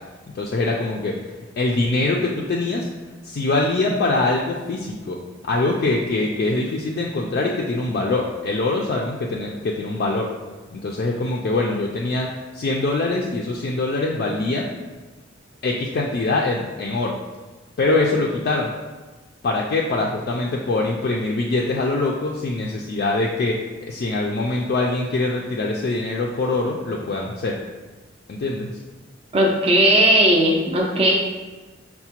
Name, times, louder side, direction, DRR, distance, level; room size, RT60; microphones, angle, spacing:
voice 1, 0.3-1.2 1.6-2.9 3.2-5.2 5.5-10.3 10.7-12.3 12.5-14.7 15.6-17.1 17.8-18.7 19.4-23.6 23.9-27.6 28.3-28.7, left 2 dB, 50° left, -2 dB, 0.3 m, -23 dB
voice 2, 29.3-31.1, right 1 dB, 30° right, -1 dB, 0.4 m, -17 dB
5.6 x 2.1 x 2.8 m, 1.2 s
head